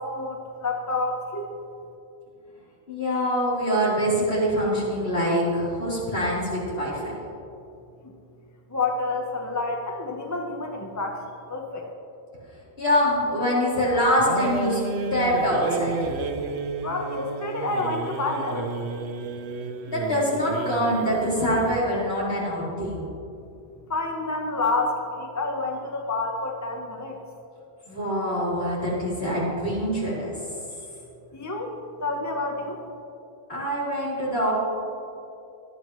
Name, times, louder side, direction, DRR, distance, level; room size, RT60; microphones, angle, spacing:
voice 1, 0.0-1.5 8.0-8.1 8.7-11.2 11.5-11.9 16.8-18.7 23.9-27.2 31.3-31.7 32.0-32.8, left 3 dB, 15° left, 1 dB, 1.0 m, -28 dB
voice 2, 2.9-7.1 12.8-14.8 15.1-16.1 19.9-23.1 27.9-30.3 33.5-34.5, equal, 65° left, -8 dB, 4.1 m, -24 dB
sound 1, 14.2-21.9, right 3 dB, 80° right, 1.1 m, -32 dB
18.5 x 12.0 x 3.2 m, 2.7 s
omnidirectional pair, 1.1 m